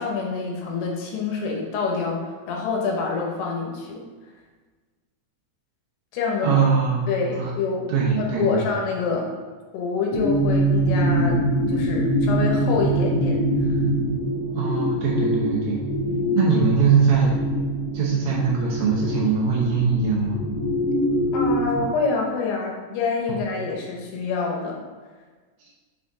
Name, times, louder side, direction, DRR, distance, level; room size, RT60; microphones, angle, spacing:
voice 1, 0.0-4.1 6.1-6.6 7.1-7.9 8.2-9.3 9.7-11.4 11.7-13.8 21.3-24.8, left 4 dB, 80° left, 0 dB, 2.9 m, -26 dB
voice 2, 6.4-7.5 7.9-8.6 12.7-12.8 14.5-15.9 16.4-17.3 17.9-20.4 23.3-23.4 25.6-25.7, right 5 dB, 70° right, -4 dB, 2.5 m, -21 dB
sound 1, 10.1-21.8, right 1 dB, 45° left, 2.1 m, -24 dB
6.7 x 4.2 x 3.7 m, 1.4 s
omnidirectional pair, 4.8 m